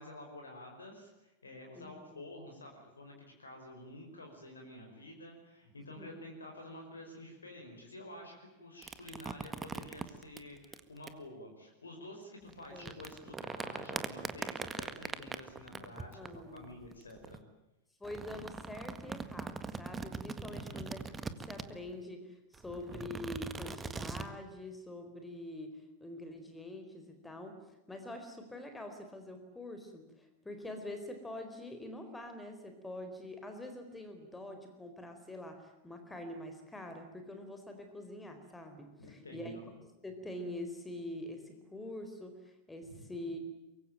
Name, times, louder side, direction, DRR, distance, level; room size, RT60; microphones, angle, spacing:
voice 1, 0.0-16.2 16.5-17.4 20.5-20.8 22.9-23.3 39.0-39.7 42.9-43.0, left 1 dB, 75° left, 2 dB, 5.2 m, -50 dB
voice 2, 1.8-2.2 6.0-6.2 12.7-12.9 15.7-16.7 18.0-25.7 26.0-27.6 27.9-39.6 40.0-43.4, left 1 dB, 10° left, 6 dB, 4.4 m, -45 dB
sound 1, 8.8-11.1 12.5-17.4 18.0-21.9 22.5-24.3, right 4 dB, 15° right, 1.8 m, -41 dB
24.5 x 23.5 x 9.0 m, 0.95 s
figure-of-eight pair, 90°, 0 cm